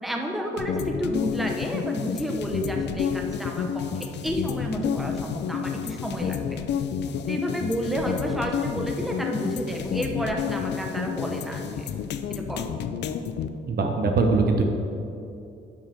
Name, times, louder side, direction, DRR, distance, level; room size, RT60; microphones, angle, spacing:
voice 1, 0.0-6.6 7.3-11.9 12.3-12.8, equal, ahead, 1 dB, 0.9 m, -30 dB
sound 1, 0.6-13.5, left 7 dB, 60° left, 0.5 m, -30 dB
voice 2, 13.7-14.6, right 3 dB, 50° right, 4 dB, 1.1 m, -21 dB
11.5 x 5.3 x 4.6 m, 2.6 s
cardioid pair, 90°, 20 cm